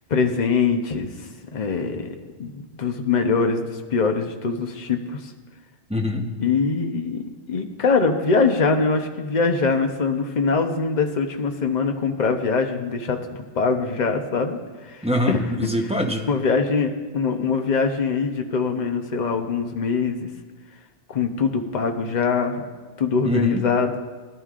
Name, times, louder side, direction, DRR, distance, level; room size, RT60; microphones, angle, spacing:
voice 1, 0.1-1.1 1.5-2.1 2.4-5.3 6.4-14.6 14.8-15.4 16.3-20.3 21.1-22.6 23.0-24.0, left 4 dB, 45° left, 5 dB, 0.9 m, -23 dB
voice 2, 5.9-6.2 15.0-16.3 23.2-23.6, equal, 5° right, 1 dB, 0.8 m, -23 dB
18.0 x 11.0 x 2.5 m, 1.4 s
omnidirectional pair, 1.2 m